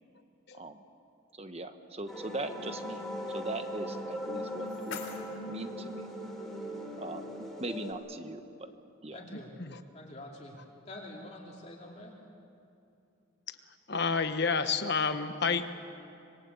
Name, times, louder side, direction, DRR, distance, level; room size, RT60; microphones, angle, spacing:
voice 1, 0.5-0.8 1.3-3.0 3.3-5.0 5.5-6.1 7.0-7.2 7.6-8.7 9.0-9.2, right 2 dB, 30° right, 8 dB, 1.2 m, -40 dB
sound 1, 2.1-7.9, equal, ahead, 3.8 m, -39 dB
sound 2, 4.2-6.2, left 5 dB, 70° left, 3.2 m, -46 dB
voice 2, 9.1-9.5 9.9-10.6 10.8-12.2, left 1 dB, 30° left, -3 dB, 2.9 m, -46 dB
voice 3, 13.9-15.7, left 5 dB, 50° left, 9 dB, 1.3 m, -29 dB
26.0 x 22.5 x 8.3 m, 2.7 s
head